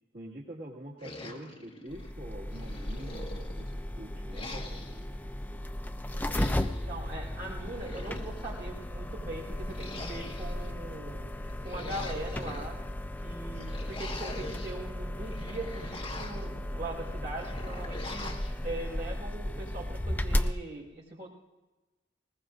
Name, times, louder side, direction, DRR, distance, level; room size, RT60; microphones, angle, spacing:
voice 1, 0.1-3.7 4.0-4.8, right 1 dB, 70° right, -6 dB, 2.2 m, -45 dB
sound 1, 1.0-2.1 2.5-3.8 4.3-5.1 6.1-6.9 7.6-8.6 9.7-10.7 11.4-12.7 13.5-14.8 15.2-16.5 17.4-18.5, left 2 dB, 30° left, 1.6 m, -43 dB
sound 2, 1.9-20.5, left 1 dB, 10° left, 0.4 m, -35 dB
voice 2, 6.9-11.4 11.6-12.8 13.2-18.3 18.6-21.3, right 2 dB, 45° right, -3 dB, 5.0 m, -41 dB
20.0 x 20.0 x 2.6 m, 1.1 s
head